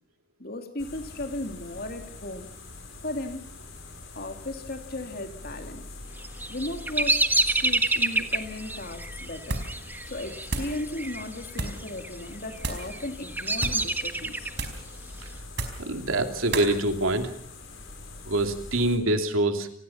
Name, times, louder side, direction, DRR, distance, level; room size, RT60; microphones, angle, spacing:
voice 1, 0.4-2.5 3.0-3.5 4.1-5.8 6.5-9.6 10.1-14.5, left 1 dB, 50° left, 6 dB, 3.1 m, -36 dB
sound 1, 0.8-19.0, left 2 dB, 75° left, 6.1 m, -44 dB
Bird vocalization bird call bird song, 6.2-11.2 11.5-12.1 12.7-14.7, right 2 dB, 10° right, 1.3 m, -27 dB
sound 2, 9.4-9.8 10.1-10.8 11.5-11.9 12.6-12.9 13.5-13.9 14.5-14.9 15.5-15.9 16.5-16.7, right 2 dB, 55° right, 4.8 m, -33 dB
voice 2, 15.8-17.3 18.3-19.7, right 1 dB, 85° right, 6 dB, 2.9 m, -25 dB
29.0 x 19.0 x 5.9 m, 0.68 s
head